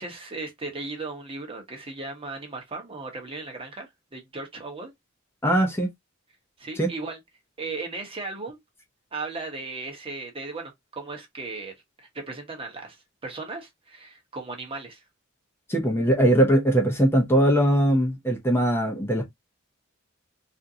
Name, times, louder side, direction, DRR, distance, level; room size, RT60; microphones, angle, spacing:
voice 1, 0.0-4.9 6.6-7.2 7.6-8.6 9.1-11.7 12.0-15.0, right 3 dB, 25° right, 1.0 m, -36 dB
voice 2, 5.4-5.9 6.8-6.9 15.7-19.2, right 1 dB, 10° left, 0.7 m, -21 dB
3.5 x 2.6 x 2.7 m
head